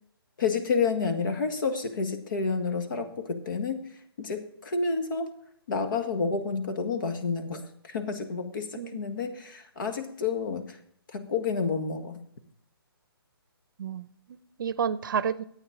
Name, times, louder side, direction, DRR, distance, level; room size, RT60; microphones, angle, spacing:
voice 1, 0.4-3.9 4.2-5.3 5.7-10.8 11.1-12.2, left 5 dB, 55° left, 7 dB, 1.7 m, -29 dB
voice 2, 8.8-9.1 13.8-15.4, right 7 dB, 55° right, 16 dB, 0.7 m, -31 dB
12.0 x 8.9 x 4.9 m, 0.68 s
hypercardioid pair, 150°, 13 cm